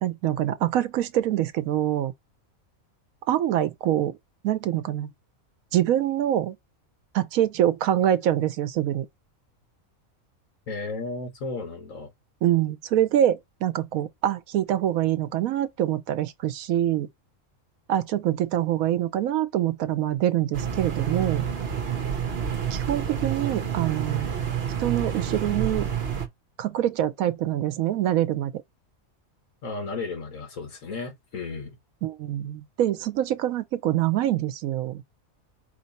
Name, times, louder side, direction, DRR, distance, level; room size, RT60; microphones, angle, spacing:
voice 1, 0.0-2.1 3.3-4.2 4.4-5.1 5.7-6.6 7.1-9.1 12.4-17.1 17.9-21.4 22.7-24.3 24.8-25.9 26.6-28.6 32.0-35.0, right 12 dB, 75° right, 1.0 m, -25 dB
voice 2, 10.7-12.1 29.6-31.8, left 3 dB, 65° left, 1.8 m, -34 dB
sound 1, 20.5-26.3, right 8 dB, 50° right, 1.1 m, -28 dB
4.6 x 2.7 x 4.1 m
omnidirectional pair, 1.5 m